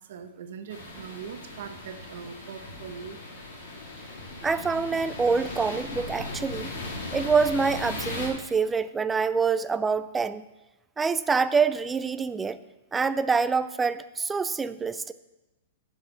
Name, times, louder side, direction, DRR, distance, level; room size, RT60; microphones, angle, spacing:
voice 1, 0.1-3.2, right 7 dB, 55° right, 8 dB, 0.8 m, -41 dB
sound 1, 0.7-8.3, left 2 dB, 55° left, 3.2 m, -38 dB
voice 2, 4.4-6.7 7.1-10.4 11.0-12.6 12.9-15.1, right 5 dB, 10° right, 13 dB, 0.3 m, -26 dB
10.5 x 6.4 x 6.9 m, 1.0 s
hypercardioid pair, 175°, 0 cm